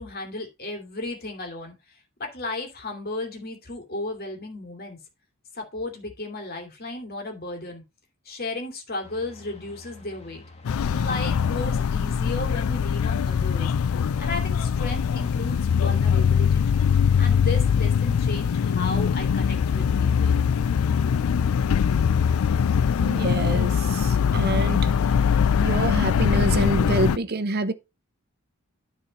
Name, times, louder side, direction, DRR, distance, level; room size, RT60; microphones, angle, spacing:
voice 1, 0.0-1.7 2.2-5.0 5.5-7.8 8.2-10.4 10.9-13.7 14.0-16.9 17.2-20.4, left 2 dB, 45° left, 2.7 m, -34 dB
sound 1, 9.0-24.0, left 2 dB, 30° left, 1.5 m, -45 dB
sound 2, 10.6-27.2, left 7 dB, 70° left, 0.4 m, -22 dB
voice 2, 23.0-24.9 25.6-27.7, right 2 dB, 50° right, 0.8 m, -27 dB
9.9 x 4.3 x 5.3 m
head